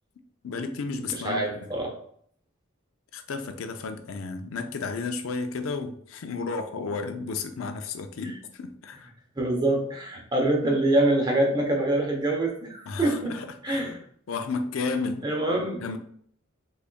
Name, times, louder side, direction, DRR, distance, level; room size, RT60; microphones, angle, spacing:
voice 1, 0.4-1.7 3.1-9.1 12.9-13.9 14.3-15.2 15.8-16.0, left 4 dB, 75° left, 7 dB, 0.4 m, -32 dB
voice 2, 1.1-2.0 9.4-13.4 13.6-14.0 15.2-15.9, right 1 dB, 20° right, 1 dB, 0.7 m, -25 dB
3.9 x 3.4 x 2.2 m, 0.62 s
head